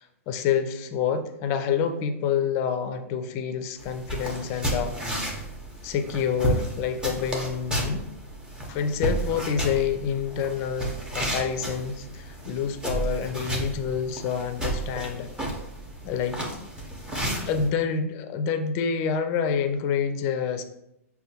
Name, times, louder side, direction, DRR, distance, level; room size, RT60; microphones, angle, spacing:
voice 1, 0.0-4.9 5.8-8.0 8.7-15.3 16.0-16.4 17.4-20.6, left 7 dB, 35° left, 8 dB, 0.4 m, -27 dB
sound 1, 3.8-17.7, right 1 dB, 10° right, 0.7 m, -32 dB
5.3 x 2.2 x 2.8 m, 0.82 s
hypercardioid pair, 125°, 8 cm